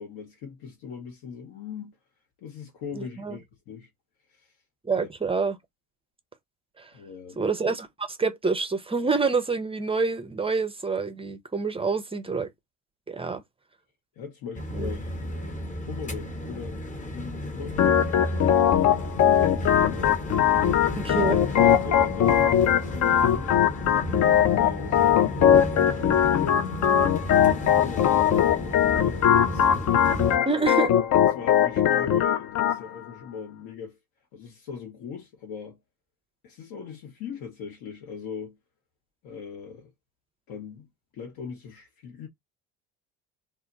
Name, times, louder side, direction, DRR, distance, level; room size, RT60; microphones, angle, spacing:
voice 1, 0.0-2.0 2.4-3.9 4.3-4.5 4.9-5.1 6.9-7.4 14.2-15.5 15.9-16.9 17.1-20.2 21.6-23.6 24.4-26.8 27.3-30.5 31.3-34.0 34.3-35.8 36.4-38.6 39.2-39.9 40.5-40.9 41.1-42.3, left 6 dB, 65° left, 0.9 m, -40 dB
voice 2, 2.9-3.4 4.8-5.6 6.8-6.9 7.4-12.5 13.1-13.4 14.7-14.9 21.0-21.4 30.5-31.0, right 4 dB, 15° right, 0.5 m, -27 dB
sound 1, 14.5-30.4, left 1 dB, 20° left, 0.9 m, -33 dB
Organ, 17.8-32.8, left 10 dB, 45° left, 0.5 m, -21 dB
2.1 x 2.0 x 3.7 m
hypercardioid pair, 70°, 41 cm